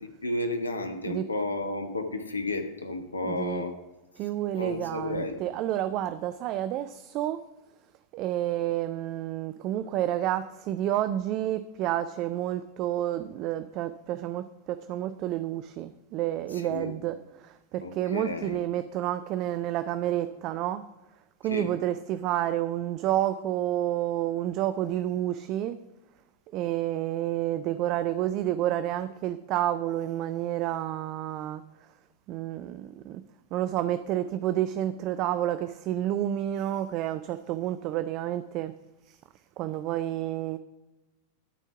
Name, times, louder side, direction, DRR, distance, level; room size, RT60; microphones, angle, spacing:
voice 1, 0.0-3.7 4.5-5.4 16.5-16.9 17.8-18.6 21.4-21.7, left 2 dB, 75° left, 7 dB, 1.1 m, -32 dB
voice 2, 3.2-3.6 4.2-7.4 8.1-20.9 21.4-25.8 26.5-31.6 32.3-33.2 33.5-38.7 39.1-39.2 39.6-40.6, right 12 dB, 40° right, 11 dB, 0.4 m, -30 dB
13.0 x 4.5 x 5.8 m, 1.1 s
figure-of-eight pair, 90°, 0 cm